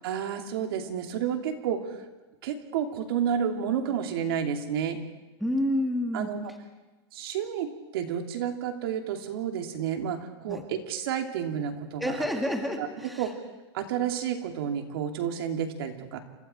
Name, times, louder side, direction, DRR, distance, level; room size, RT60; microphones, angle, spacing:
voice 1, 0.0-2.0 2.4-5.0 6.1-6.5 7.1-12.2 12.8-12.9 13.2-13.3 13.7-16.2, right 8 dB, 60° right, 4 dB, 2.9 m, -30 dB
voice 2, 5.4-6.3 10.5-10.6 12.0-13.3, left 1 dB, ahead, 2 dB, 1.7 m, -29 dB
28.5 x 26.5 x 4.5 m, 1.2 s
supercardioid pair, 175°, 14 cm